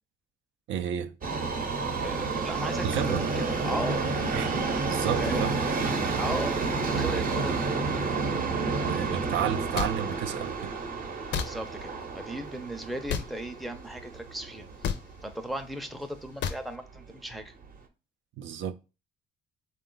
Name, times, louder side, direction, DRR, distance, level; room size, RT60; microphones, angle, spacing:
voice 1, 0.7-1.1 2.8-3.2 4.3-4.6 4.8-6.0 8.8-10.8 18.4-18.7, right 9 dB, 75° right, 0.4 m, -31 dB
Subway metro underground, 1.2-15.3 15.6-15.7 16.6-16.7 17.0-17.1 17.7-17.8, right 4 dB, 45° right, 0.7 m, -30 dB
voice 2, 2.0-4.0 5.2-5.4 6.2-7.7 11.4-14.7 15.2-17.5, right 1 dB, ahead, 0.5 m, -36 dB
sound 1, 9.7-9.9 11.3-11.5 13.1-13.3 14.8-15.0 16.4-16.6, left 7 dB, 65° left, 0.5 m, -29 dB
3.7 x 2.3 x 3.7 m
cardioid pair, 90°, 20 cm